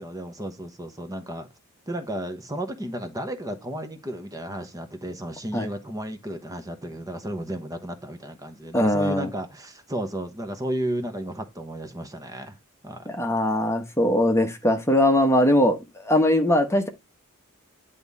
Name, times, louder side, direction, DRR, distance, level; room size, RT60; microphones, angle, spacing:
voice 1, 0.0-1.5 1.9-12.6 12.8-13.1, right 1 dB, 15° right, 1.0 m, -33 dB
voice 2, 8.7-9.3 13.1-16.9, left 1 dB, 10° left, 1.0 m, -21 dB
10.5 x 3.6 x 4.1 m
head